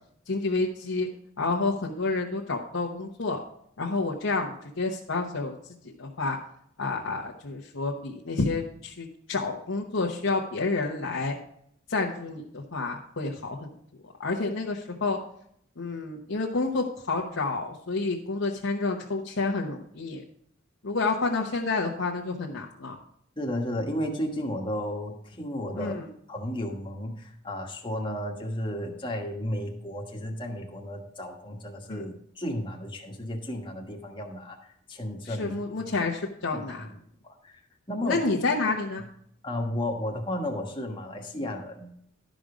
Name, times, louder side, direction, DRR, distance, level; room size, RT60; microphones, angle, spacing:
voice 1, 0.3-1.1 1.4-3.4 3.8-5.6 6.0-6.4 6.8-11.4 11.9-13.7 14.0-15.2 15.8-20.2 20.8-23.0 25.8-26.1 31.9-32.0 35.3-36.9 38.0-39.0, left 3 dB, 75° left, -2 dB, 1.0 m, -29 dB
voice 2, 23.4-26.0 26.3-35.5 36.5-36.9 37.2-37.6 37.9-38.2 39.4-41.9, left 1 dB, 25° left, 1 dB, 1.4 m, -33 dB
12.0 x 5.1 x 5.0 m, 0.68 s
head